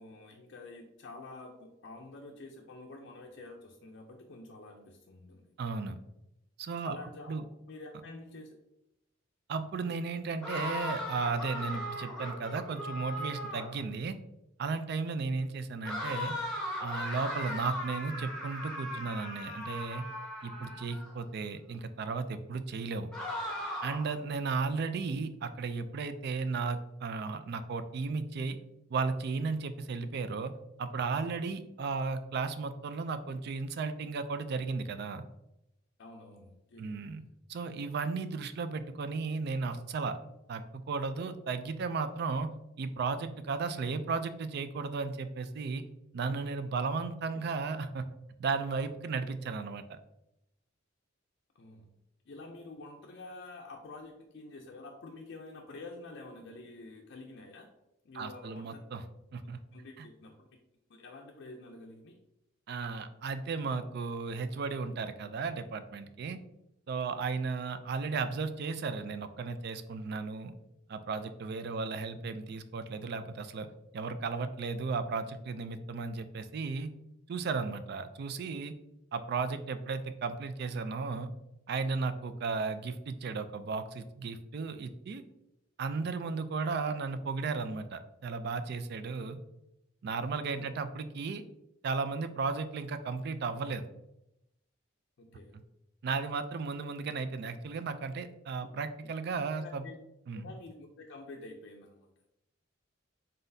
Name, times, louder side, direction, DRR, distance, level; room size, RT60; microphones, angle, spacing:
voice 1, 0.0-5.6 5.8-5.9 6.8-7.4 7.7-8.5 36.0-37.0 48.8-48.9 51.5-51.9 52.3-57.7 58.0-58.8 59.7-60.5 60.9-62.2 90.6-90.7 95.2-95.6 99.6-100.0 100.3-102.1, left 2 dB, 60° left, 1 dB, 0.4 m, -48 dB
voice 2, 5.6-6.0 6.6-7.0 7.3-7.4 9.5-14.1 14.6-16.3 16.8-20.0 20.4-23.1 23.8-28.6 28.9-30.5 30.8-35.2 36.8-37.2 37.5-40.2 40.5-42.5 42.8-45.8 46.1-48.0 48.4-50.0 58.1-59.0 59.3-59.6 60.0-60.1 62.7-66.4 66.9-70.5 70.9-73.7 73.9-76.9 77.3-78.7 79.1-81.3 81.7-85.2 85.8-89.4 90.0-91.4 91.8-93.9 96.0-99.9 100.3-100.5, right 4 dB, 55° right, 11 dB, 0.3 m, -35 dB
sound 1, 10.4-13.8 15.8-21.1 23.1-24.2, left 1 dB, 5° left, 1.0 m, -38 dB
3.9 x 3.8 x 2.6 m, 0.86 s
head